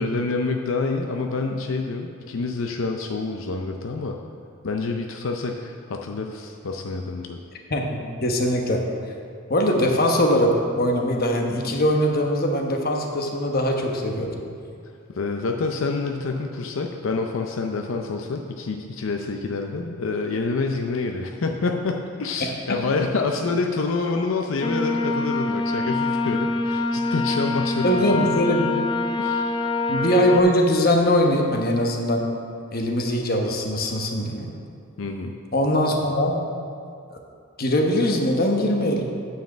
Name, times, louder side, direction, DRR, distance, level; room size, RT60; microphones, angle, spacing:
voice 1, 0.0-4.2 4.6-7.4 15.1-27.9 29.2-29.6 35.0-35.4, left 3 dB, 85° left, 3 dB, 0.5 m, -27 dB
voice 2, 7.7-8.8 9.5-14.4 22.4-22.8 27.8-28.7 29.9-32.3 32.7-34.5 35.5-36.4 37.6-39.1, equal, 50° left, 2 dB, 1.1 m, -21 dB
sound 1, 24.6-30.4, left 3 dB, 25° left, 0.4 m, -25 dB
9.3 x 4.8 x 7.1 m, 2.4 s
head